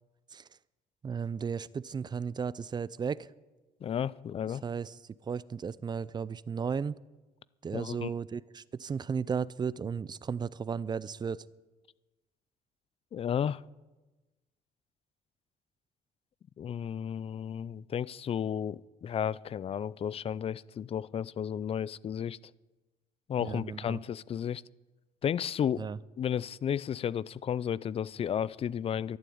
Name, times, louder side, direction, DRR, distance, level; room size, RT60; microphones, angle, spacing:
voice 1, 1.0-3.3 4.6-5.0 5.2-7.0 7.6-11.5 23.4-24.0 25.8-26.0, right 6 dB, 25° right, 0.4 m, -34 dB
voice 2, 3.8-4.6 7.7-8.1 13.1-13.6 16.6-22.4 23.3-24.6 25.2-25.9 26.2-29.2, left 8 dB, 35° left, 0.4 m, -33 dB
12.5 x 11.5 x 8.6 m
cardioid pair, 110°, 17 cm